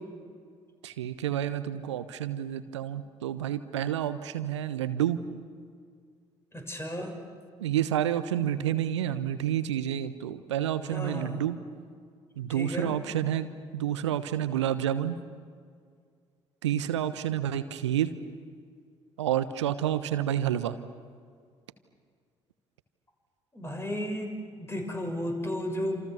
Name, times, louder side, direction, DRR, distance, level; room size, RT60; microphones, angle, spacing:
voice 1, 0.8-5.2 7.6-11.6 12.4-13.5 13.7-15.2 16.6-18.1 19.2-20.8, right 11 dB, 75° right, 13 dB, 1.1 m, -29 dB
voice 2, 6.5-7.2 10.9-11.4 12.5-12.9 23.5-26.1, equal, 15° left, 3 dB, 6.6 m, -34 dB
29.0 x 27.5 x 7.2 m, 2.1 s
figure-of-eight pair, 45°, 15 cm